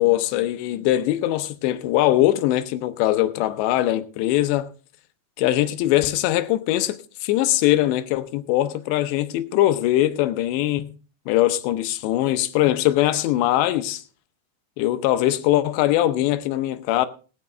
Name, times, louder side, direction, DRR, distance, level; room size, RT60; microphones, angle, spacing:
voice 1, 0.0-4.7 5.4-10.9 11.3-14.0 14.8-17.1, left 14 dB, 80° left, 2.9 m, -21 dB
18.5 x 9.3 x 3.2 m
omnidirectional pair, 5.2 m